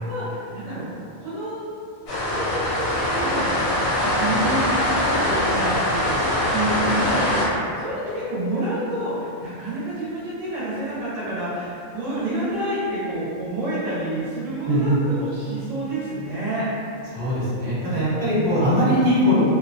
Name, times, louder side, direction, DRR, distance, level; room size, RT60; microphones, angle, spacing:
voice 1, 0.0-0.8 1.2-1.6 2.2-3.8 4.1-16.7, right 1 dB, 70° right, -10 dB, 0.9 m, -28 dB
sound 1, 2.1-7.5, left 1 dB, 90° left, 1.2 m, -22 dB
voice 2, 14.7-15.0 17.1-19.4, equal, 40° right, -11 dB, 1.0 m, -20 dB
2.6 x 2.0 x 2.5 m, 2.4 s
omnidirectional pair, 1.4 m